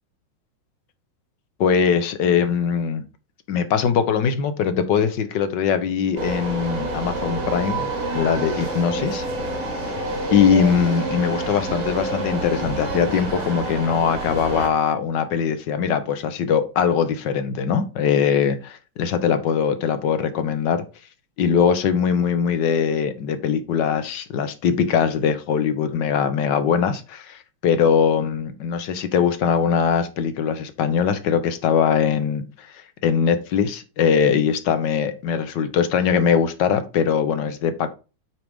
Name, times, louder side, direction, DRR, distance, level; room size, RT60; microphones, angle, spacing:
voice 1, 1.6-3.0 3.5-9.2 10.3-20.8 21.4-32.7 33.0-37.9, left 7 dB, 65° left, 1.5 m, -21 dB
sound 1, 6.2-14.7, right 2 dB, 70° right, 3.3 m, -28 dB
8.9 x 4.8 x 3.6 m
omnidirectional pair, 2.3 m